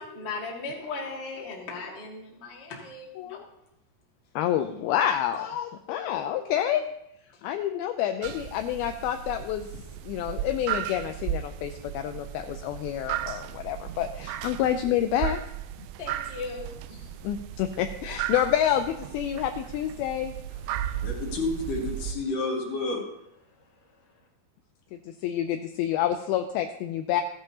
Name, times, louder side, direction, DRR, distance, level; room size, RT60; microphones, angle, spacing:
voice 1, 0.0-3.4 7.3-7.4 8.0-8.1 14.8-15.0 16.0-17.2, left 3 dB, 25° left, -4 dB, 1.3 m, -38 dB
voice 2, 4.4-6.9 7.4-9.7 10.0-15.4 17.2-20.3 25.2-27.2, left 11 dB, 85° left, 7 dB, 2.2 m, -28 dB
sound 1, 8.2-22.1, right 11 dB, 85° right, 2.7 m, -35 dB
voice 3, 20.7-23.0, left 2 dB, 60° left, 0 dB, 2.8 m, -30 dB
15.0 x 10.5 x 2.8 m, 0.80 s
omnidirectional pair, 4.8 m